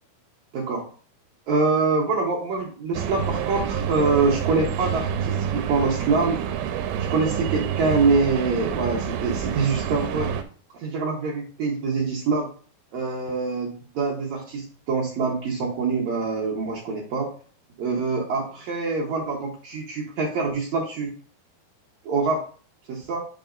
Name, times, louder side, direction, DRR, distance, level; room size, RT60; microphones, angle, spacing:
voice 1, 0.5-0.9 1.5-6.4 7.1-10.3 10.7-12.5 12.9-17.3 17.8-21.1 22.0-22.4 22.9-23.2, right 4 dB, 70° right, -2 dB, 1.8 m, -25 dB
sound 1, 2.9-10.4, right 8 dB, 90° right, 2.9 m, -28 dB
7.4 x 5.6 x 2.5 m, 0.42 s
omnidirectional pair, 4.8 m